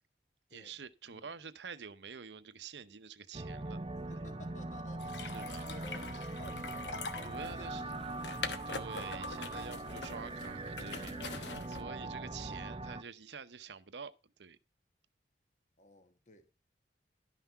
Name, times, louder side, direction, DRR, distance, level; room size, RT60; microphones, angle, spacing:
voice 1, 0.5-3.8 4.1-4.2 5.3-5.7 7.2-7.8 8.7-14.1 14.4-14.6, right 6 dB, 80° right, 0.8 m, -48 dB
sound 1, 3.3-13.0, right 2 dB, 30° right, 0.5 m, -41 dB
voice 2, 4.1-8.4 12.3-12.7 15.8-16.6, left 2 dB, 40° left, 1.2 m, -55 dB
sound 2, 5.0-11.8, left 4 dB, 80° left, 1.1 m, -44 dB
12.0 x 5.9 x 5.7 m
head